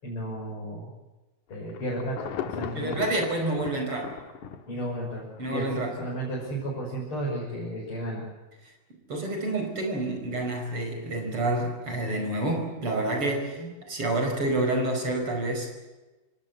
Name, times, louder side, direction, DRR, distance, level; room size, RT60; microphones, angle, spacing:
voice 1, 0.0-0.9 1.5-3.0 4.7-8.3 13.5-13.7, right 1 dB, 40° left, -4 dB, 7.0 m, -33 dB
Insect / Thunder / Rain, 1.5-5.9 6.4-6.5, left 9 dB, 90° left, 3.0 m, -38 dB
voice 2, 2.7-4.2 5.4-5.9 9.1-15.7, right 2 dB, 45° right, 4 dB, 6.0 m, -28 dB
28.0 x 18.0 x 8.1 m, 1.1 s
omnidirectional pair, 3.4 m